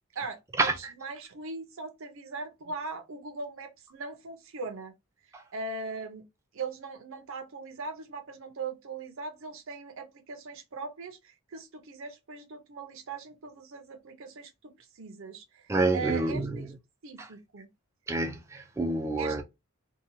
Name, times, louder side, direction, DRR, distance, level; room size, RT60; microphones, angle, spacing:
voice 1, 0.1-4.9 5.5-6.2 6.5-16.7 17.0-17.7 19.2-19.4, right 4 dB, 65° right, 0.7 m, -40 dB
voice 2, 15.7-16.7 17.2-17.3 18.1-19.4, right 2 dB, 15° right, 0.4 m, -28 dB
2.8 x 2.3 x 2.6 m
head